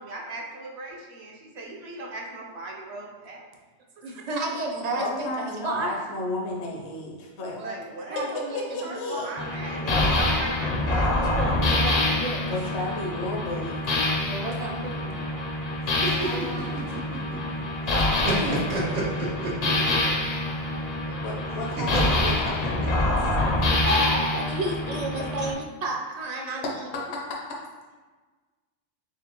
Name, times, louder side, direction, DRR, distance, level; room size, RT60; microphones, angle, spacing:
voice 1, 0.0-3.4 7.6-11.9 12.5-13.0 20.7-21.3 21.7-21.8 22.2-22.3 24.9-25.0, right 2 dB, 70° right, -1 dB, 1.0 m, -39 dB
voice 2, 4.0-5.9 7.5-7.8 8.1-9.3 9.7-10.2 11.0-12.5 14.3-15.4 16.2-16.8 18.4-19.4 20.0-20.2 21.9-22.1 23.8-26.6, right 2 dB, 50° right, 0 dB, 0.5 m, -32 dB
voice 3, 5.0-7.6 8.5-9.3 12.4-14.1 21.2-22.8, left 2 dB, 75° left, -2 dB, 0.9 m, -33 dB
sound 1, 9.4-25.5, left 2 dB, 50° left, 0.5 m, -26 dB
sound 2, 15.9-17.6 17.9-20.1 21.8-23.2, right 2 dB, 85° right, 1.2 m, -30 dB
4.1 x 3.5 x 2.9 m, 1.4 s
omnidirectional pair, 1.2 m